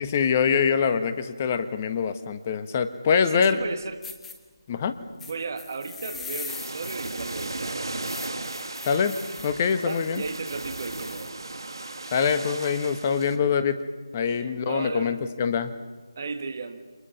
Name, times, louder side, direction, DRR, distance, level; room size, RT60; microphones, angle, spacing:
voice 1, 0.0-3.6 4.7-5.0 8.9-9.2 9.4-10.2 12.1-13.8 14.1-15.7, left 6 dB, 25° left, 10 dB, 1.3 m, -24 dB
voice 2, 3.1-4.0 5.2-8.0 9.8-11.3 12.9-13.0 14.3-15.2 16.2-16.8, right 4 dB, 40° right, 6 dB, 1.8 m, -35 dB
sound 1, 4.0-4.3 5.2-11.3, left 5 dB, 5° left, 1.3 m, -42 dB
sound 2, 6.5-13.4, right 2 dB, 70° right, 2.5 m, -36 dB
30.0 x 24.5 x 5.8 m, 1.4 s
figure-of-eight pair, 160°, 2 cm